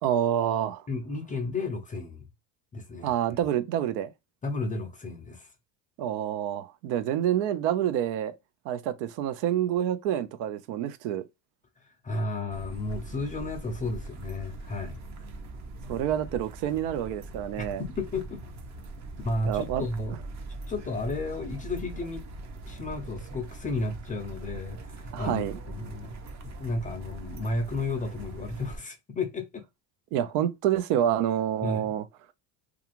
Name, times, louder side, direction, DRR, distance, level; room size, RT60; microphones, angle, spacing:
voice 1, 0.0-0.9 3.0-4.1 6.0-8.4 8.7-11.3 15.9-17.8 19.4-19.8 25.1-25.6 30.1-32.1, right 10 dB, 80° right, 0.6 m, -27 dB
voice 2, 0.9-2.2 2.7-3.1 4.4-5.5 11.8-15.0 17.6-18.4 19.2-20.2 20.7-22.3 22.6-29.6 31.6-31.9, left 2 dB, 20° left, 0.3 m, -33 dB
sound 1, 12.5-28.8, right 2 dB, 35° right, 0.6 m, -41 dB
2.4 x 2.4 x 2.8 m
cardioid pair, 120°, 46 cm